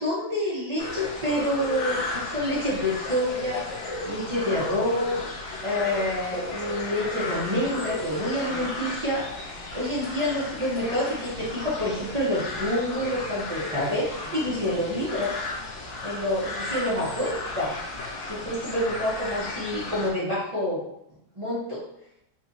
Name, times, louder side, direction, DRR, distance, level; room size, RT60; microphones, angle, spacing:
voice 1, 0.0-3.7 4.0-5.2 5.6-9.3 9.7-15.3 16.0-17.7 18.3-20.8 21.4-21.8, left 1 dB, 50° right, -9 dB, 0.3 m, -27 dB
sound 1, 0.8-20.1, left 2 dB, 80° left, 0.6 m, -34 dB
4.0 x 2.9 x 2.7 m, 0.78 s
omnidirectional pair, 2.2 m